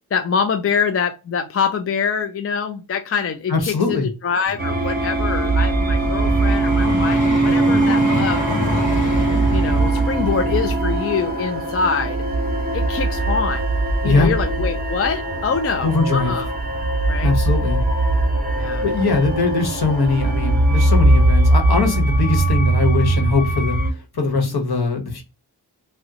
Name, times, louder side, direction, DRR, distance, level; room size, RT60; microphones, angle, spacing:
voice 1, 0.1-8.4 9.5-12.2 12.7-13.6 14.0-16.5 17.1-17.3 18.6-18.8 24.5-24.7, left 6 dB, 35° left, 6 dB, 0.4 m, -24 dB
voice 2, 3.5-4.1 14.0-14.3 15.8-16.3 17.2-17.8 18.8-23.8 24.1-25.2, left 3 dB, 65° left, 3 dB, 1.2 m, -21 dB
Vehicle, 4.4-13.5 14.1-14.3, left 1 dB, 20° left, 1.4 m, -27 dB
sound 1, 4.6-23.9, right 2 dB, 20° right, 0.8 m, -20 dB
3.5 x 2.1 x 2.8 m, 0.28 s
wide cardioid pair, 85°, 41 cm